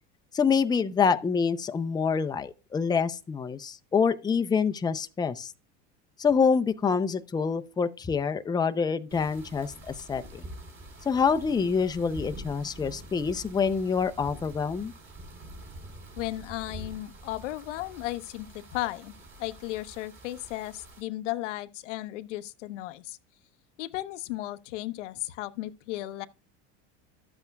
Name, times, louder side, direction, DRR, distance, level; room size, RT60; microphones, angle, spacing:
voice 1, 0.3-5.5 6.2-10.4 11.0-14.9, left 5 dB, 10° left, 0.5 m, -26 dB
sound 1, 9.1-21.0, right 1 dB, 35° right, 3.8 m, -45 dB
voice 2, 16.2-23.2 23.8-26.3, left 16 dB, 90° left, 0.7 m, -35 dB
12.0 x 8.1 x 2.3 m
supercardioid pair, 105°, 35 cm